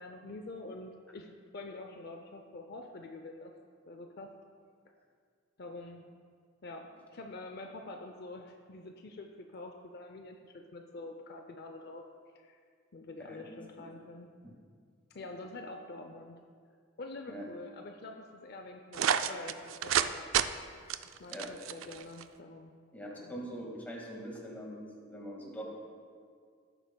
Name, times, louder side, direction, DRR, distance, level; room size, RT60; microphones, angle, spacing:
voice 1, 0.0-3.5 3.9-4.3 5.6-6.0 6.6-12.0 12.3-12.6 12.9-14.3 15.1-16.4 17.0-20.3 21.2-22.7 23.2-23.3, left 2 dB, 55° left, 4 dB, 0.5 m, -46 dB
voice 2, 13.2-13.6 14.4-14.5 17.3-17.4 21.3-21.5 22.9-24.8 25.1-25.6, equal, 10° left, -2 dB, 1.8 m, -43 dB
sound 1, 18.9-20.1 20.3-20.5 20.9-22.2, right 9 dB, 85° right, 0.4 m, -29 dB
16.5 x 8.9 x 2.3 m, 2.1 s
head